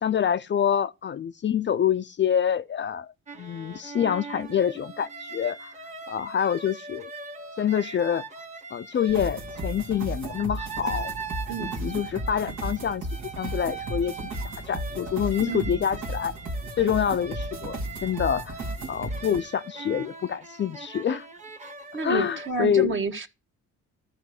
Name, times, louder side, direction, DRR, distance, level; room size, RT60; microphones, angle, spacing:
voice 1, 0.0-3.1 3.4-5.7 6.1-7.1 7.6-8.2 8.7-11.1 11.6-13.1 13.4-14.2 14.7-16.3 16.8-18.5 18.9-21.3 22.0-22.9, left 8 dB, 40° left, 0.5 m, -26 dB
sound 1, 3.3-22.5, right 4 dB, 25° right, 1.3 m, -40 dB
sound 2, 9.1-19.4, right 1 dB, 75° right, 1.9 m, -35 dB
voice 2, 11.5-11.9 15.5-15.8 21.9-23.3, right 4 dB, 40° right, 1.5 m, -30 dB
13.5 x 5.0 x 6.4 m
cardioid pair, 90°, 30 cm